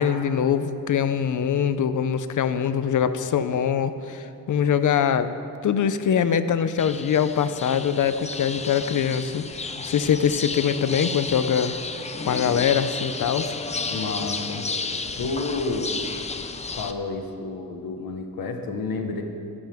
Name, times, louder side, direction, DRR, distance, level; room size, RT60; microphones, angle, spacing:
voice 1, 0.0-5.3 5.6-11.7 12.2-13.6, left 8 dB, 60° left, 11 dB, 0.7 m, -23 dB
sound 1, 6.8-16.9, left 4 dB, 20° left, 0.5 m, -32 dB
voice 2, 13.9-14.7 15.2-15.9 16.8-19.2, left 3 dB, 85° left, 4 dB, 1.5 m, -30 dB
21.0 x 11.5 x 3.6 m, 2.6 s
wide cardioid pair, 165°, 35 cm